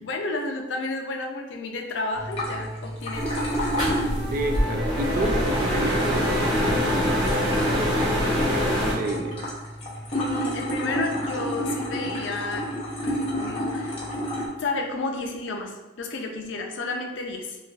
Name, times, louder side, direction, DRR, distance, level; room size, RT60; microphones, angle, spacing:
voice 1, 0.0-3.5 10.1-12.7 13.0-13.9 14.6-17.6, left 2 dB, 70° left, 3 dB, 0.4 m, -31 dB
sound 1, 2.1-14.5, equal, 30° left, 0.6 m, -31 dB
Wind instrument woodwind instrument, 2.2-2.6 2.9-9.5, right 1 dB, 90° right, 0.6 m, -40 dB
sound 2, 3.1-8.9, equal, 25° right, 1.0 m, -24 dB
voice 2, 4.3-9.5, right 2 dB, 45° right, 4 dB, 0.3 m, -31 dB
3.1 x 2.3 x 2.4 m, 1.1 s
head